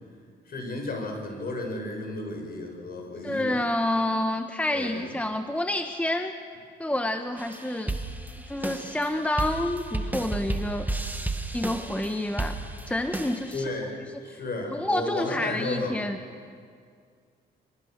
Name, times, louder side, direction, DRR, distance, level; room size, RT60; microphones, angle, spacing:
voice 1, 0.5-3.6 4.7-5.1 13.5-14.0 14.2-16.0, left 2 dB, 50° left, 1 dB, 6.8 m, -33 dB
voice 2, 3.2-6.3 6.8-7.9 8.4-10.9 11.5-12.6 12.9-13.7 14.3-14.4 14.7-16.2, left 1 dB, 5° left, 6 dB, 1.1 m, -28 dB
sound 1, 7.4-13.6, right 2 dB, 10° right, 1.8 m, -33 dB
26.0 x 24.0 x 6.7 m, 2.2 s
cardioid pair, 90°, 20 cm